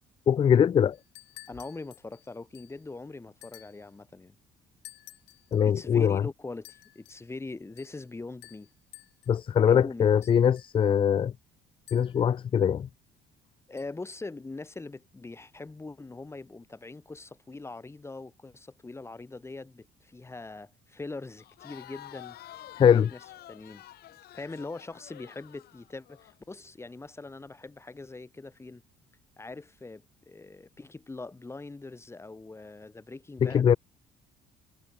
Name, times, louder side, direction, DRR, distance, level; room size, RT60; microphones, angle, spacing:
voice 1, 0.3-1.0 5.5-6.2 9.3-11.3 11.9-12.9 22.8-23.1 33.4-33.8, left 8 dB, 30° left, 0.4 m, -22 dB
sound 1, 0.9-2.9 3.4-3.9 4.8-5.6 6.6-7.3 7.8-8.1 8.4-9.4 10.2-10.9 11.9-12.3 13.8-13.9, left 20 dB, 90° left, 2.1 m, -53 dB
voice 2, 1.5-4.4 5.6-8.7 9.7-10.3 13.7-22.4 22.8-23.0 23.5-23.8 24.3-28.8 29.4-33.8, left 3 dB, 15° left, 1.9 m, -42 dB
Crowd, 21.4-26.3, left 14 dB, 65° left, 1.4 m, -49 dB
cardioid pair, 110°, 17 cm